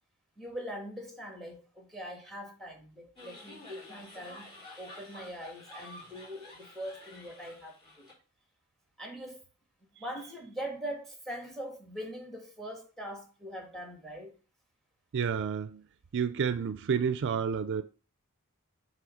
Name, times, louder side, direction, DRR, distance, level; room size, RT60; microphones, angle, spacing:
voice 1, 0.4-8.1 9.0-9.4 10.0-14.4, equal, ahead, 1.6 m, -42 dB
sound 1, 3.2-8.1, left 2 dB, 20° left, 3.4 m, -50 dB
voice 2, 15.1-15.8 16.1-17.8, right 6 dB, 55° right, 0.4 m, -30 dB
7.8 x 3.0 x 5.0 m
head